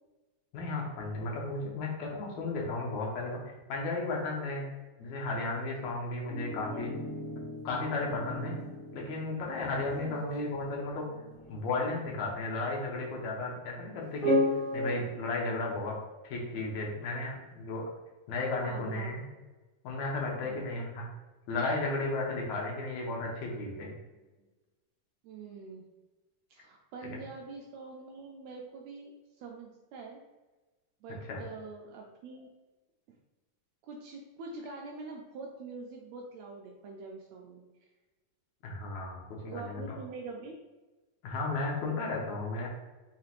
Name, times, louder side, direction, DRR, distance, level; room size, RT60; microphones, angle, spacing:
voice 1, 0.5-4.7 5.0-7.0 7.6-8.6 8.9-11.1 11.5-14.4 14.7-15.9 16.2-17.8 18.3-19.2 19.8-21.1 21.5-23.9 27.0-27.2 31.3-31.4 38.6-40.0 41.2-42.7, left 2 dB, 70° left, -2 dB, 2.0 m, -34 dB
sound 1, 6.3-12.6 14.2-14.9, left 1 dB, 45° left, 0.6 m, -35 dB
voice 2, 18.6-19.2 20.4-20.7 23.8-23.9 24.4-24.5 25.2-25.8 26.5-29.1 29.4-30.2 31.0-32.5 33.8-37.6 39.4-40.6, right 4 dB, 80° right, 0 dB, 1.6 m, -45 dB
5.5 x 3.1 x 2.5 m, 1.2 s
omnidirectional pair, 3.5 m